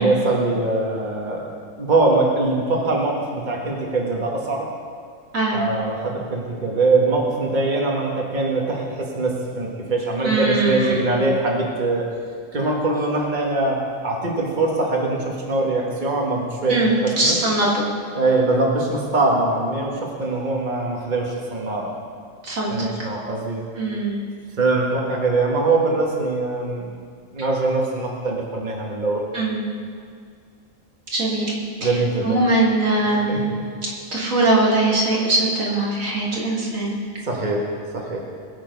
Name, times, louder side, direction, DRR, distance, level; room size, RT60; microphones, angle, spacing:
voice 1, 0.0-1.5 1.8-4.7 5.5-12.1 12.5-17.4 18.1-21.9 22.7-23.7 24.6-26.9 27.3-29.2 31.8-32.4 33.1-33.7 37.2-38.3, right 2 dB, 35° right, -1 dB, 1.9 m, -22 dB
voice 2, 10.2-11.2 16.7-17.7 22.4-22.9 23.8-24.2 29.3-29.6 31.1-31.5 31.8-31.9 32.2-33.5 34.1-37.0, right 2 dB, 90° right, -4 dB, 3.1 m, -21 dB
21.5 x 7.4 x 5.4 m, 2.2 s
omnidirectional pair, 1.3 m